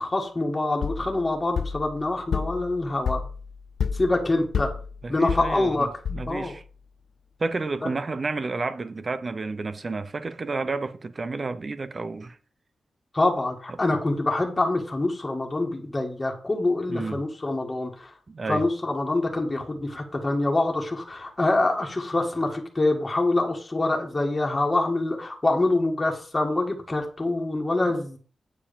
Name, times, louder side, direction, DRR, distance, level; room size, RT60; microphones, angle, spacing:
voice 1, 0.0-3.2 3.9-4.7 5.1-5.9 6.3-6.5 7.8-7.9 13.1-18.1 18.5-28.2, left 2 dB, 20° left, 2.0 m, -25 dB
sound 1, 0.8-6.6, left 6 dB, 80° left, 0.5 m, -31 dB
voice 2, 5.0-6.6 7.4-12.4 13.7-13.8 16.9-17.2 18.3-18.6, right 3 dB, 35° right, 0.8 m, -31 dB
8.9 x 4.9 x 7.0 m
wide cardioid pair, 140°, 0 cm